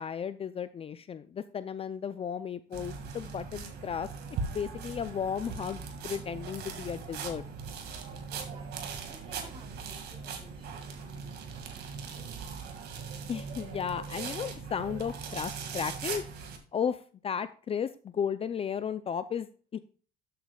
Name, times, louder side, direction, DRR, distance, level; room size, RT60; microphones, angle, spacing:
voice 1, 0.0-4.1 4.5-7.4 13.3-16.2 16.7-19.8, left 7 dB, 35° left, 13 dB, 0.5 m, -34 dB
sound 1, 2.7-16.6, right 5 dB, 75° right, 2.1 m, -40 dB
voice 2, 7.9-11.6, right 2 dB, 30° right, 1 dB, 3.7 m, -55 dB
12.5 x 7.8 x 2.3 m, 0.41 s
cardioid pair, 110°, 17 cm